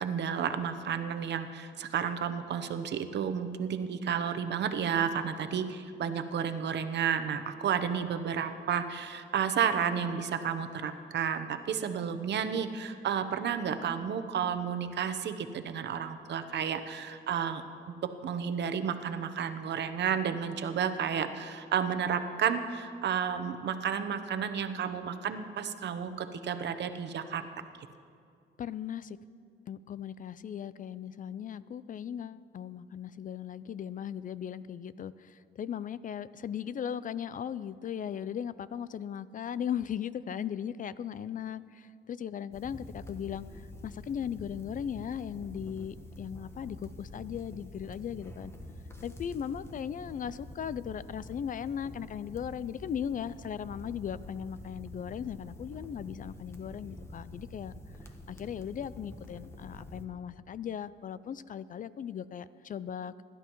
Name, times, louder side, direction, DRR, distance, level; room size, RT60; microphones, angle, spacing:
voice 1, 0.0-17.9 18.2-27.4, right 7 dB, 60° right, 9 dB, 0.9 m, -32 dB
voice 2, 28.6-29.2 29.7-48.5 49.0-57.7 58.3-63.2, left 8 dB, 45° left, 17 dB, 0.4 m, -38 dB
sound 1, 42.5-60.1, left 1 dB, 15° left, 1.3 m, -47 dB
22.0 x 11.5 x 3.1 m, 2.3 s
cardioid pair, 90°, 20 cm